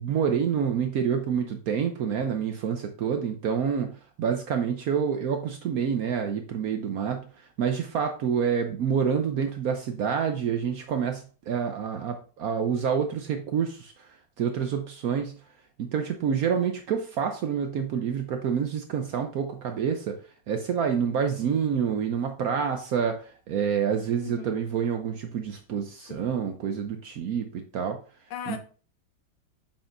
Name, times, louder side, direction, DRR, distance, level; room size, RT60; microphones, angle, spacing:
voice 1, 0.0-7.3 7.6-14.1 14.4-15.4 15.8-20.2 20.5-28.0 28.5-28.6, right 7 dB, 70° right, 0.8 m, -27 dB
voice 2, 24.2-24.6 26.0-26.3 28.3-28.6, left 8 dB, 90° left, 1.7 m, -38 dB
6.9 x 5.5 x 2.5 m
omnidirectional pair, 2.2 m